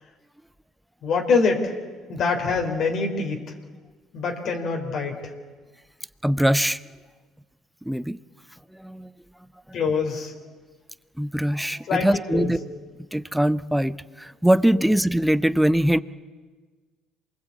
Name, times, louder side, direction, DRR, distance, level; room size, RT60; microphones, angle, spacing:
voice 1, 1.0-1.7 2.1-3.6 4.1-5.3 9.7-10.3 11.9-12.5, left 4 dB, 60° left, 1 dB, 3.9 m, -24 dB
voice 2, 6.2-6.8 7.8-8.2 8.7-9.1 9.7-9.8 11.2-12.6 13.1-16.0, right 1 dB, 5° right, 15 dB, 0.8 m, -22 dB
27.0 x 20.5 x 8.4 m, 1.4 s
supercardioid pair, 70°, 0 cm